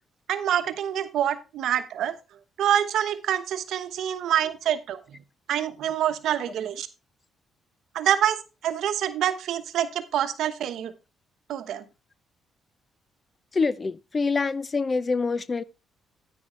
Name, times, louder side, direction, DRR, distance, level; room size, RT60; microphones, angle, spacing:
voice 1, 0.3-2.1 2.6-5.0 5.5-6.9 7.9-10.9 11.5-11.8, right 10 dB, 75° right, 1.1 m, -26 dB
voice 2, 13.5-15.6, left 4 dB, 30° left, 0.5 m, -25 dB
9.6 x 9.2 x 3.1 m
cardioid pair, 90°, 0 cm